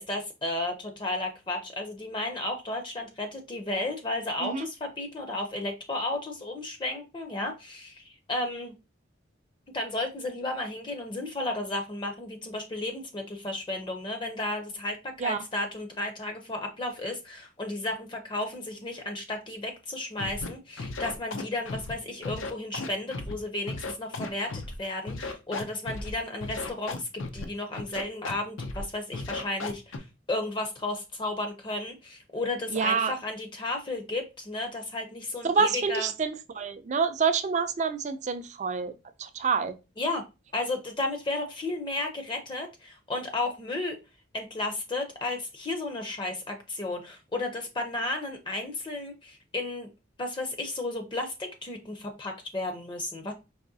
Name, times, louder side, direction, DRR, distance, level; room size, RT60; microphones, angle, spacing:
voice 1, 0.0-8.7 9.7-36.1 40.0-40.2 40.5-44.0 44.3-49.9 50.2-53.3, left 2 dB, 25° left, 0.5 m, -33 dB
Scratching (performance technique), 20.2-20.5 20.8-21.9 22.2-23.3 23.7-24.8 25.1-26.1 26.4-27.4 27.7-28.3 28.6-28.8 29.1-30.0, left 3 dB, 90° left, 0.6 m, -35 dB
voice 2, 32.7-33.2 35.4-38.9 39.2-39.8, right 5 dB, 35° right, 0.4 m, -27 dB
4.8 x 3.0 x 2.6 m
head